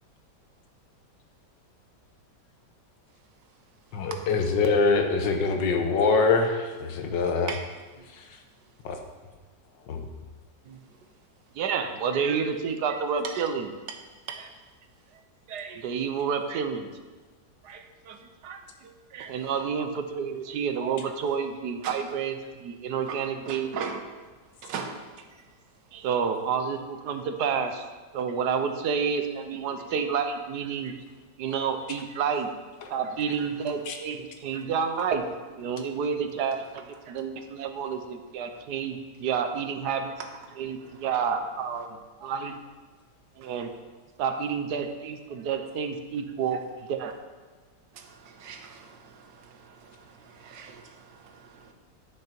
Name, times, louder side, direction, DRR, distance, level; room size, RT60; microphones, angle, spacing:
voice 1, 3.9-7.5 8.1-8.3 8.8-9.0 9.9-10.1 32.8-32.9 33.9-34.0, left 4 dB, 90° left, 1.7 m, -24 dB
voice 2, 11.6-13.7 15.5-16.9 17.6-18.2 18.4-23.7 25.9-27.9 28.1-30.9 31.4-32.5 32.9-35.2 35.6-39.0 39.2-40.1 40.6-41.9 42.2-42.5 43.4-43.7 44.2-46.6 46.9-47.1, right 6 dB, 70° right, 1.3 m, -29 dB
voice 3, 19.2-19.5 21.8-22.0 23.1-24.0 24.6-25.2 34.5-34.6 38.4-38.6 40.2-40.3 40.8-41.1 43.4-43.7 47.9-51.7, right 6 dB, 85° right, 1.6 m, -40 dB
10.5 x 6.5 x 4.4 m
omnidirectional pair, 1.9 m